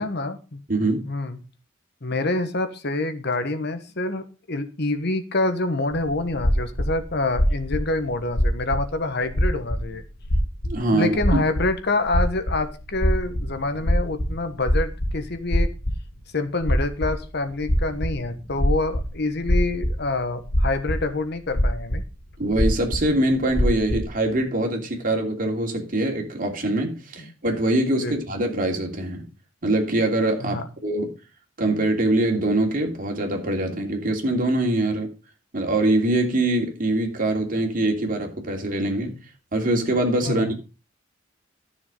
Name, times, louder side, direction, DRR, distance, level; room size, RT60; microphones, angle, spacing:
voice 1, 0.0-0.6 1.0-1.4 2.0-10.0 10.9-15.7 16.3-22.0 28.0-28.1 30.4-30.7 40.2-40.5, left 2 dB, 55° left, 1.3 m, -26 dB
voice 2, 0.7-1.1 10.6-11.1 22.4-29.2 29.6-31.1 31.6-35.1 35.5-39.2 39.5-40.6, right 1 dB, 45° right, 2.9 m, -23 dB
sound 1, 5.9-8.9 9.2-10.0 10.2-10.7 11.1-11.7 12.1-16.2 16.6-17.2 17.6-19.1 19.4-21.0 21.5-22.1 22.4-24.0, equal, 75° left, 2.2 m, -23 dB
12.5 x 6.8 x 5.3 m
head